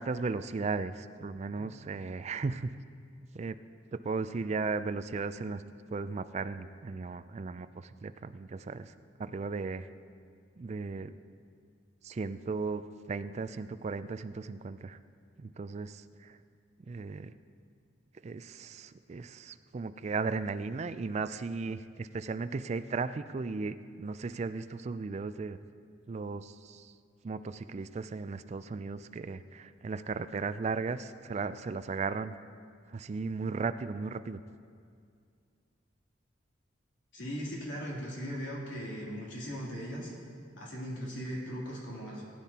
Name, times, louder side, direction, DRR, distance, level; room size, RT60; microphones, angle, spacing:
voice 1, 0.0-2.7 3.3-3.6 3.9-5.6 5.9-8.9 9.2-9.9 10.6-11.1 12.0-12.8 13.1-15.0 15.4-16.4 16.9-17.3 18.2-25.6 26.1-26.9 27.2-32.4 32.9-34.4, right 4 dB, 35° right, 12 dB, 0.3 m, -36 dB
voice 2, 37.1-40.1 40.6-42.2, equal, 85° left, -5 dB, 3.0 m, -38 dB
18.5 x 10.0 x 2.9 m, 2.3 s
head